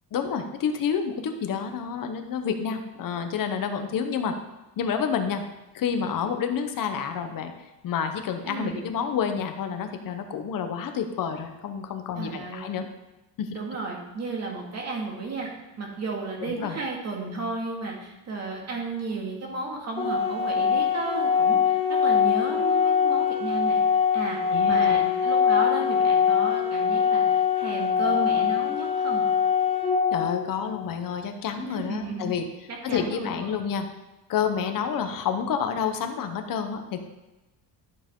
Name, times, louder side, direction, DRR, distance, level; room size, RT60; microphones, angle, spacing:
voice 1, 0.1-4.4 4.8-5.4 5.7-7.5 7.8-12.9 13.4-13.5 16.4-16.8 24.5-25.0 30.1-32.5 32.8-33.9 34.3-37.0, left 7 dB, 50° left, 7 dB, 1.0 m, -29 dB
voice 2, 8.4-8.9 12.2-12.7 13.5-15.5 15.8-23.8 24.1-24.4 24.7-29.2 31.6-32.3 32.7-33.6, right 3 dB, 35° right, -1 dB, 2.2 m, -33 dB
Organ, 20.0-31.0, left 7 dB, 15° left, 0.7 m, -23 dB
12.0 x 7.4 x 3.8 m, 1.0 s
cardioid pair, 160°, 44 cm